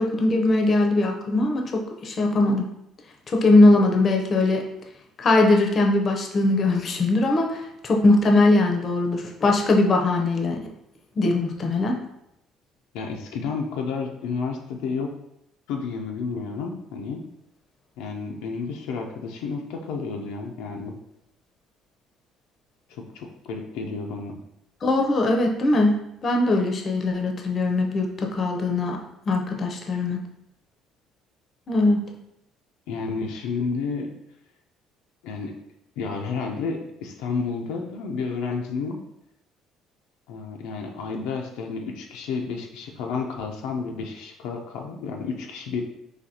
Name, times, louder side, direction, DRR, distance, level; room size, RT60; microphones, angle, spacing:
voice 1, 0.0-2.7 3.3-4.7 5.2-10.6 11.2-12.0 24.8-29.0 29.3-30.2 31.7-32.1, left 2 dB, 40° left, 2 dB, 0.6 m, -21 dB
voice 2, 12.9-15.1 15.7-17.2 18.0-21.0 22.9-24.4 32.9-34.1 35.2-35.5 36.0-39.0 40.3-45.8, left 5 dB, 90° left, 1 dB, 0.5 m, -31 dB
4.1 x 2.8 x 2.7 m, 0.80 s
cardioid pair, 110°, 0 cm